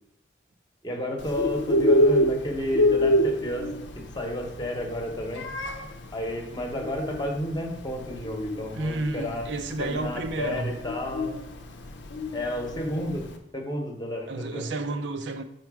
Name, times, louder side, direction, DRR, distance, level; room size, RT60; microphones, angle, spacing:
voice 1, 0.8-3.7 3.9-5.4 6.1-9.5 9.8-11.3 12.3-13.2 13.5-14.6, left 1 dB, 20° left, 0.9 m, -31 dB
Bird, 1.2-13.3, left 1 dB, 80° left, 0.7 m, -27 dB
voice 2, 8.7-10.7 14.3-15.4, right 2 dB, 75° right, 0.5 m, -31 dB
5.8 x 4.6 x 4.7 m
head